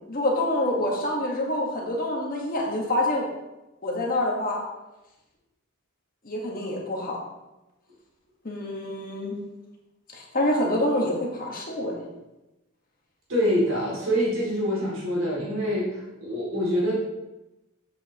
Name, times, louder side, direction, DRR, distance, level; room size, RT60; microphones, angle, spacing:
voice 1, 0.1-3.3 3.8-4.6 6.2-7.2 8.4-9.3 10.1-12.0, left 1 dB, 45° left, -1 dB, 1.5 m, -26 dB
voice 2, 13.3-16.9, equal, 65° right, -5 dB, 2.5 m, -25 dB
8.2 x 7.2 x 3.0 m, 0.99 s
head